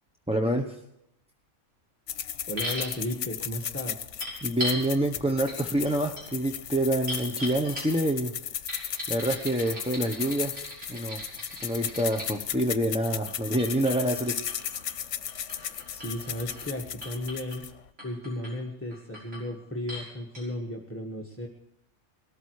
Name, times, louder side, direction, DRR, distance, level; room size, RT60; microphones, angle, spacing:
voice 1, 0.3-0.8 4.4-8.3 9.1-10.5 10.9-11.2 11.6-14.4, right 1 dB, 5° right, 3 dB, 0.9 m, -27 dB
sound 1, 2.1-17.9, left 9 dB, 75° left, 1.1 m, -36 dB
voice 2, 2.5-4.0 15.9-17.6 18.0-21.5, left 1 dB, 10° left, 0 dB, 1.5 m, -35 dB
sound 2, 2.6-2.9 4.2-4.8 5.5-5.6 5.8-8.1 8.7-12.3 13.3-16.7 17.0-17.6 18.0-18.5 18.9-19.5 19.9-20.1 20.3-20.4, left 1 dB, 70° right, 6.4 m, -38 dB
19.5 x 13.5 x 4.7 m, 0.84 s
omnidirectional pair, 1.3 m